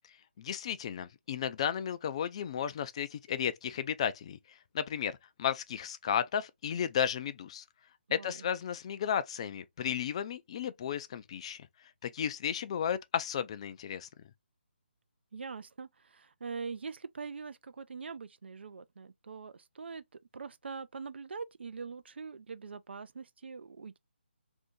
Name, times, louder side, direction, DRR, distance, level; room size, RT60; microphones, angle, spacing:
voice 1, 0.4-4.4 4.7-7.6 8.1-11.7 12.0-14.1, left 8 dB, 30° left, 0.3 m, -34 dB
voice 2, 8.1-8.5 15.3-20.0 20.3-24.0, right 5 dB, 70° right, 0.4 m, -43 dB
2.7 x 2.7 x 3.5 m
figure-of-eight pair, 155°, 6 cm